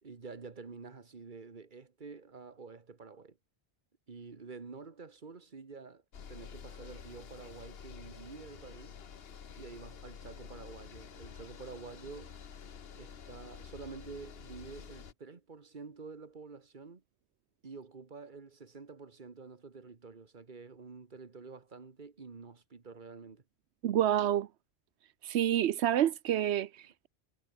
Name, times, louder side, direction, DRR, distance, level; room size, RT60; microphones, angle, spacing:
voice 1, 0.0-3.4 4.1-6.0 6.3-9.0 9.6-12.4 12.9-17.0 17.6-23.4, right 4 dB, 45° right, 1.8 m, -48 dB
sound 1, 6.1-15.1, left 7 dB, 65° left, 1.3 m, -49 dB
voice 2, 23.8-24.5 25.2-27.1, right 11 dB, 85° right, 0.9 m, -28 dB
omnidirectional pair, 1.1 m